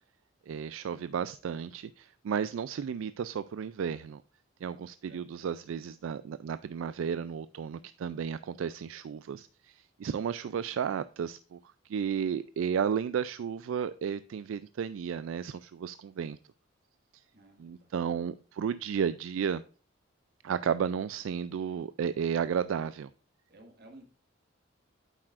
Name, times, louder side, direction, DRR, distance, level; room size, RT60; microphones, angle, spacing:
voice 1, 0.5-4.2 4.6-11.6 11.8-16.4 17.1-17.2 17.6-19.6 20.4-23.1, right 7 dB, 75° right, 14 dB, 0.3 m, -33 dB
voice 2, 17.3-17.9 23.5-24.1, right 1 dB, 55° right, 3 dB, 1.8 m, -54 dB
9.1 x 7.5 x 2.5 m, 0.40 s
head